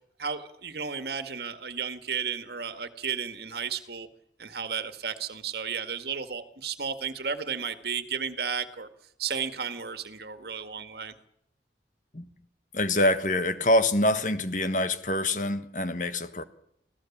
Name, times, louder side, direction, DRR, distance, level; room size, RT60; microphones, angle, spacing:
voice 1, 0.2-4.1 4.4-8.9 9.2-11.1, right 6 dB, 60° right, 9 dB, 1.9 m, -33 dB
voice 2, 12.7-16.4, left 1 dB, 45° left, 11 dB, 1.5 m, -25 dB
26.0 x 16.5 x 7.3 m, 0.71 s
head